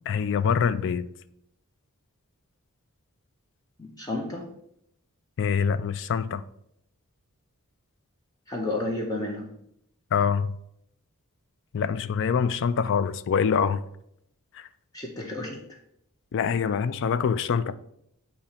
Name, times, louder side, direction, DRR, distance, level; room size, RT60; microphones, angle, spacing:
voice 1, 0.1-1.1 5.4-6.4 10.1-10.6 11.7-13.8 14.5-14.7 16.3-17.7, left 6 dB, 55° left, 0.3 m, -25 dB
voice 2, 3.8-4.4 8.5-9.5 14.9-15.6, left 2 dB, 15° left, 0.7 m, -31 dB
8.6 x 2.9 x 4.2 m
head